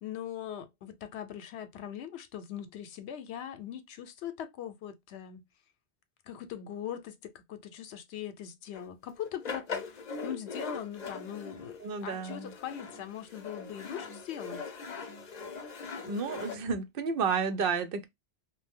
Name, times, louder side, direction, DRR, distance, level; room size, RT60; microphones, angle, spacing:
voice 1, 0.0-5.4 6.3-14.6, left 10 dB, 85° left, 0.9 m, -41 dB
sound 1, 8.7-8.9 9.2-16.6, left 5 dB, 50° left, 0.6 m, -41 dB
voice 2, 11.8-12.5 16.0-18.1, right 5 dB, 65° right, 0.7 m, -31 dB
2.7 x 2.1 x 3.4 m
omnidirectional pair, 1.1 m